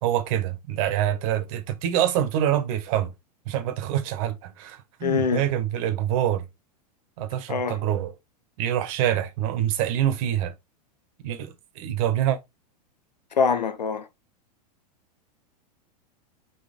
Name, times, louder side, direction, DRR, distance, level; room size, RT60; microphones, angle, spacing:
voice 1, 0.0-3.1 3.4-6.4 7.2-8.1 8.6-10.5 11.2-12.4, right 11 dB, 55° right, 1.6 m, -25 dB
voice 2, 5.0-5.4 7.5-7.8 13.4-14.0, left 6 dB, 85° left, 1.2 m, -24 dB
4.8 x 4.3 x 5.2 m
hypercardioid pair, 105°, 21 cm